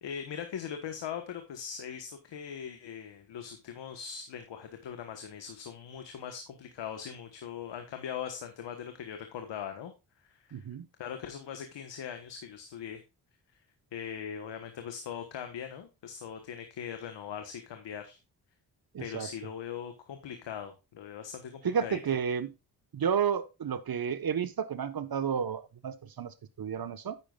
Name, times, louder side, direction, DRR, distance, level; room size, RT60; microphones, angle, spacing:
voice 1, 0.0-9.9 10.2-10.7 11.0-13.0 13.9-18.2 19.0-22.2, left 8 dB, 80° left, 7 dB, 1.3 m, -40 dB
voice 2, 10.5-10.9 18.9-19.3 21.6-22.5 22.9-27.1, right 7 dB, 55° right, 12 dB, 1.3 m, -31 dB
9.9 x 8.9 x 2.4 m, 0.27 s
supercardioid pair, 50°, 43 cm